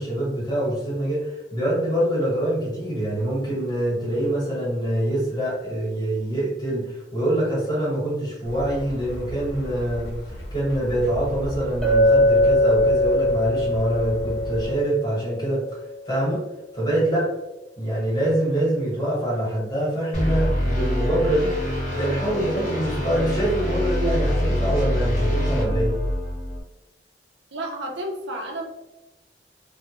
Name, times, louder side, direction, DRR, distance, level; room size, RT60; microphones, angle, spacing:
voice 1, 0.0-15.6 16.0-16.4 16.7-17.3 17.8-21.5 21.9-25.9, right 1 dB, 25° left, -6 dB, 1.2 m, -25 dB
sound 1, 8.4-14.8, equal, 70° left, 0.8 m, -35 dB
Chink clink, 11.8-15.8, left 1 dB, 5° left, 0.4 m, -21 dB
sound 2, 20.1-26.6, equal, 40° left, 0.9 m, -25 dB
voice 2, 27.5-28.6, right 1 dB, 80° right, 2 dB, 0.5 m, -31 dB
2.1 x 2.1 x 2.8 m, 0.99 s
head